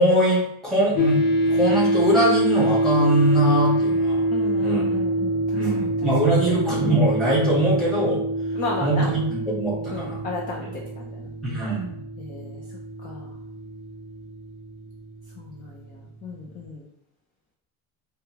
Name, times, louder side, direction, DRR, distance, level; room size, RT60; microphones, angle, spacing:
voice 1, 0.0-4.2 4.6-4.9 5.5-8.2 8.8-10.2 11.4-12.0, right 1 dB, ahead, -7 dB, 1.4 m, -22 dB
sound 1, 1.0-16.2, right 1 dB, 65° left, 0.9 m, -25 dB
voice 2, 4.3-6.1 8.5-9.1 9.9-11.3 12.2-12.6 13.0-13.4 15.4-16.9, left 3 dB, 25° left, -1 dB, 0.5 m, -34 dB
5.2 x 2.2 x 2.9 m, 0.75 s
cardioid pair, 165°, 35 cm